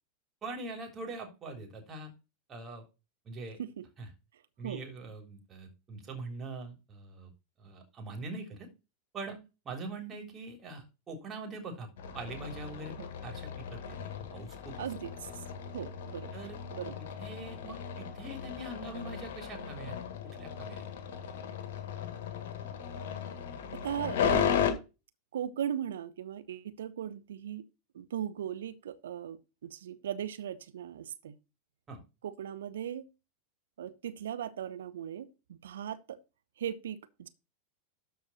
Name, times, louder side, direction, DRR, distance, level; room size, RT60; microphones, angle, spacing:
voice 1, 0.4-2.1 2.5-2.9 3.3-3.6 4.0-4.1 4.6-7.3 7.6-8.7 9.1-11.9 12.1-13.0 13.2-14.0 14.3-14.9 16.3-16.6 17.2-19.9 20.4-20.9 31.9-32.0, right 2 dB, 30° right, 3.5 m, -43 dB
sound 1, 12.0-24.7, left 8 dB, 60° left, 1.9 m, -36 dB
voice 2, 14.8-15.4 15.7-16.3 16.7-17.0 23.7-24.8 25.3-27.6 27.9-31.4 32.2-33.1 33.8-36.2 36.6-37.3, right 10 dB, 70° right, 0.9 m, -38 dB
13.0 x 4.7 x 4.2 m
figure-of-eight pair, 90°, 0 cm